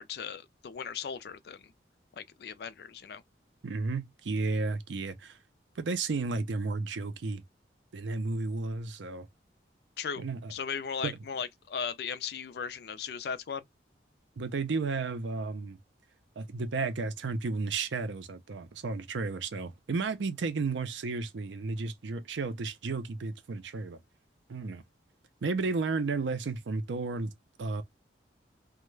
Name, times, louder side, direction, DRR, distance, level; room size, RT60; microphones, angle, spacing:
voice 1, 0.0-1.7 2.2-3.2 10.0-10.2 10.5-13.6, left 6 dB, 55° left, 0.3 m, -37 dB
voice 2, 3.6-5.4 5.8-7.4 7.9-9.3 10.2-10.5 11.0-11.2 14.4-15.8 16.4-24.0 24.5-24.8 25.4-27.3 27.6-27.8, right 3 dB, 80° right, 0.5 m, -33 dB
2.3 x 2.1 x 3.0 m
head